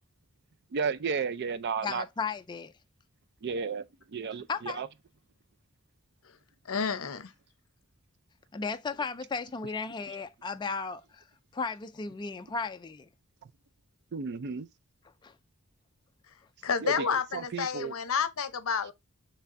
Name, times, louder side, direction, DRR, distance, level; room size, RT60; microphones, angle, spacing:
voice 1, 0.7-2.0 3.4-3.8 4.1-4.9 14.1-14.7 16.8-17.9, right 5 dB, 50° right, 0.4 m, -33 dB
voice 2, 1.8-2.7 4.5-4.8 8.5-11.2 11.5-13.1 15.2-15.3, left 4 dB, 20° left, 0.3 m, -35 dB
voice 3, 6.7-7.3 16.6-18.9, left 6 dB, 65° left, 0.7 m, -30 dB
5.7 x 3.3 x 2.5 m
head